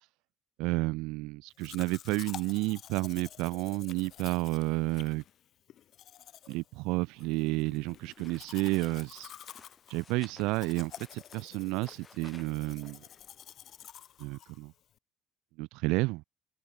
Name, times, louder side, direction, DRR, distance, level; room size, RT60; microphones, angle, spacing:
voice 1, 0.6-5.2 6.5-9.3 9.9-13.0 14.2-14.7 15.6-16.2, right 23 dB, 85° right, 0.3 m, -31 dB
Domestic sounds home sounds, 1.6-15.0, left 11 dB, 50° left, 1.1 m, -50 dB
sound 1, 7.9-13.9, left 5 dB, 25° left, 1.2 m, -58 dB
open air
cardioid pair, 140°, 0 cm